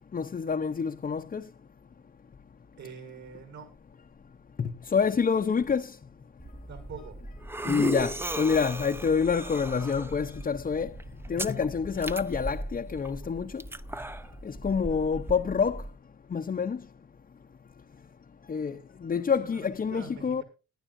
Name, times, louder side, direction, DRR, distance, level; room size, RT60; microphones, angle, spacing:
voice 1, 0.1-1.4 4.6-6.0 7.6-10.9 11.3-13.6 14.4-15.8 16.3-16.8 18.5-20.4, left 6 dB, 30° left, 0.7 m, -27 dB
voice 2, 2.8-3.7 6.7-7.2 19.4-20.4, right 6 dB, 65° right, 6.7 m, -44 dB
sound 1, 6.4-15.9, right 2 dB, 10° right, 0.6 m, -37 dB
19.5 x 11.5 x 2.6 m
cardioid pair, 90°, 30 cm